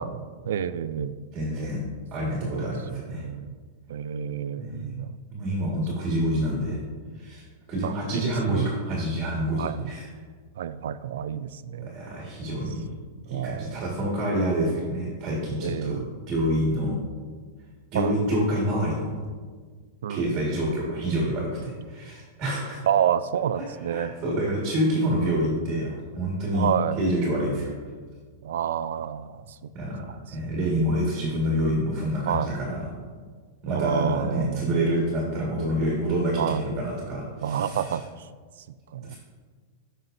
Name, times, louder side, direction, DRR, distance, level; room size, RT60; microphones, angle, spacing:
voice 1, 0.0-1.1 2.4-3.5 3.9-5.2 7.8-8.7 9.6-9.9 10.6-12.0 13.3-13.8 15.6-16.1 17.9-18.2 20.0-20.4 22.9-24.1 26.5-27.0 28.4-29.7 30.0-30.7 32.3-32.5 33.6-34.8 36.4-36.7 37.4-38.3 38.9-39.1, right 9 dB, 80° right, 14 dB, 0.4 m, -29 dB
voice 2, 1.3-1.8 2.1-3.3 4.6-4.9 5.3-6.8 7.2-10.0 11.9-12.8 13.3-16.0 16.3-17.0 17.9-19.2 20.1-22.8 23.9-26.7 27.0-27.7 29.7-30.0 30.3-32.8 33.6-37.8 39.1-39.2, equal, 25° right, -3 dB, 1.7 m, -27 dB
13.5 x 5.5 x 2.6 m, 1.6 s
supercardioid pair, 165°, 0 cm